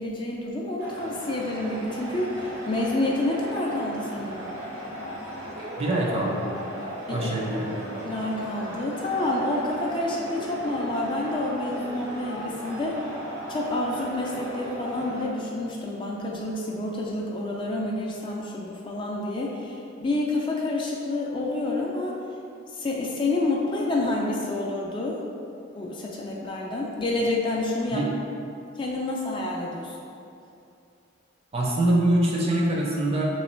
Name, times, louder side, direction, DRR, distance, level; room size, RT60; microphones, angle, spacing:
voice 1, 0.0-4.4 7.1-7.4 8.0-13.0 13.5-22.2 22.7-25.2 25.7-28.0 28.8-30.0, left 2 dB, 25° left, -3 dB, 0.4 m, -28 dB
sound 1, 0.8-15.3, equal, 75° right, 1.0 m, -37 dB
voice 2, 5.8-6.5 7.1-7.8 27.9-28.1 31.5-33.2, right 1 dB, 30° right, -2 dB, 0.5 m, -24 dB
3.2 x 3.1 x 4.3 m, 2.6 s
head